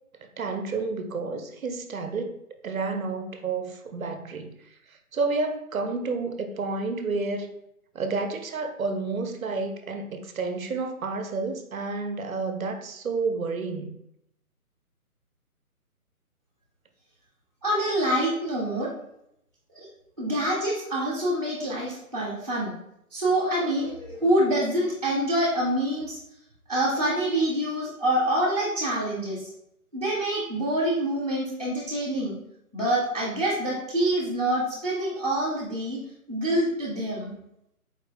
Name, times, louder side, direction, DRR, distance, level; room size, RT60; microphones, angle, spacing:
voice 1, 0.4-2.4 2.6-4.6 5.1-7.5 7.9-14.0, right 3 dB, 65° right, 7 dB, 0.7 m, -30 dB
voice 2, 17.6-18.9 19.7-19.9 20.2-22.8 23.1-26.2 26.7-29.5 29.9-32.4 32.7-36.0 36.3-37.3, right 1 dB, 25° right, -10 dB, 0.7 m, -26 dB
4.4 x 2.5 x 3.2 m, 0.77 s
hypercardioid pair, 180°, 45 cm